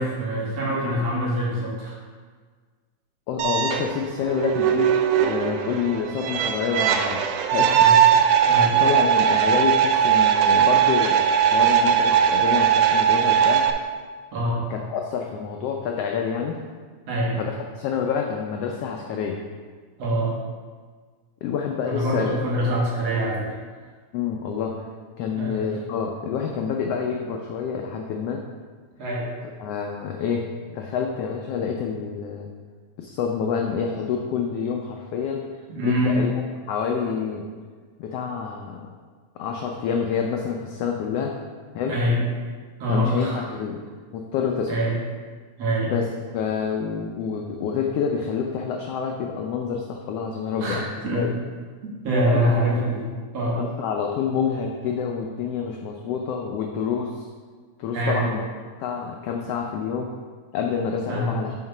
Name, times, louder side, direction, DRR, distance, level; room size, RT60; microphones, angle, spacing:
voice 1, 0.0-2.0 7.8-8.0 8.5-8.8 14.3-14.6 17.1-17.4 20.0-20.4 21.9-23.5 25.4-25.6 29.0-29.3 35.7-36.2 41.9-42.2 42.8-43.5 44.7-45.0 45.6-45.9 50.6-50.8 51.0-51.2 52.0-53.1 53.3-53.6 57.9-58.2 61.1-61.4, equal, 60° right, -4 dB, 2.4 m, -24 dB
voice 2, 3.3-4.9 5.2-7.2 7.5-7.8 8.8-13.7 14.7-16.6 17.4-19.4 21.4-22.3 24.1-24.7 25.2-28.4 29.6-30.5 30.7-32.5 33.0-35.5 35.8-36.4 36.7-37.5 38.0-38.9 39.4-41.3 41.7-41.9 42.9-43.8 44.1-44.7 45.9-51.3 52.3-52.4 53.6-57.2 57.8-58.4 58.8-60.1 60.5-61.6, left 6 dB, 85° left, 1 dB, 1.3 m, -27 dB
sound 1, 3.4-13.7, right 8 dB, 90° right, 1.4 m, -19 dB
5.9 x 5.2 x 5.4 m, 1.5 s
omnidirectional pair, 3.4 m